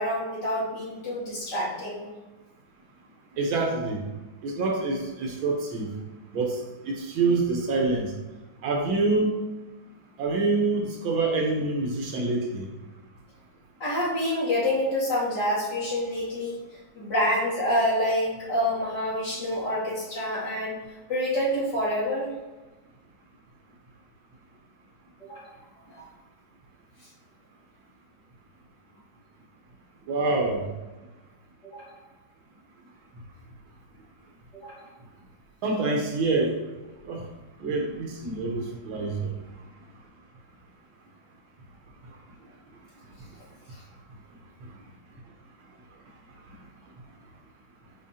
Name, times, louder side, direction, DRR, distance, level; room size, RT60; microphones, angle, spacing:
voice 1, 0.0-2.0 13.8-16.6 16.9-20.8 21.1-22.3 25.2-25.5 25.9-26.1 31.6-31.9 34.5-34.8, left 1 dB, 55° left, -9 dB, 3.0 m, -27 dB
voice 2, 3.4-4.0 4.4-5.9 6.3-8.1 8.6-9.3 10.2-12.7 30.1-30.7 35.6-36.6 37.1-37.2 37.6-39.3, right 3 dB, 75° right, 1 dB, 1.8 m, -26 dB
9.5 x 4.3 x 2.8 m, 1.1 s
omnidirectional pair, 2.3 m